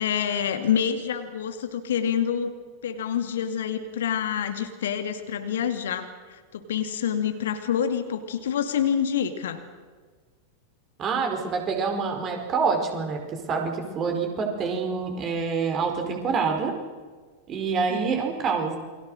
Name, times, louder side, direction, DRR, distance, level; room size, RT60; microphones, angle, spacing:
voice 1, 0.0-2.5 2.8-9.6 17.9-18.1, left 8 dB, 60° left, 8 dB, 2.2 m, -27 dB
voice 2, 11.0-13.2 13.5-16.8 17.5-18.8, right 5 dB, 30° right, 3 dB, 4.8 m, -26 dB
28.5 x 23.0 x 6.5 m, 1.5 s
figure-of-eight pair, 90°, 0 cm